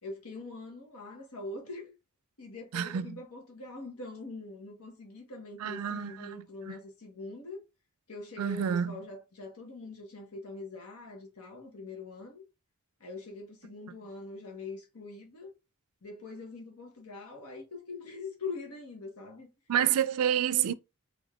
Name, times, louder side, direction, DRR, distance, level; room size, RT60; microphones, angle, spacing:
voice 1, 0.0-2.0 2.4-7.6 8.1-12.4 13.0-15.5 16.0-19.5, left 3 dB, 90° left, 1.1 m, -43 dB
voice 2, 2.7-3.2 5.6-6.7 8.4-8.9 19.7-20.7, right 9 dB, 80° right, 0.4 m, -29 dB
3.5 x 3.4 x 2.3 m
head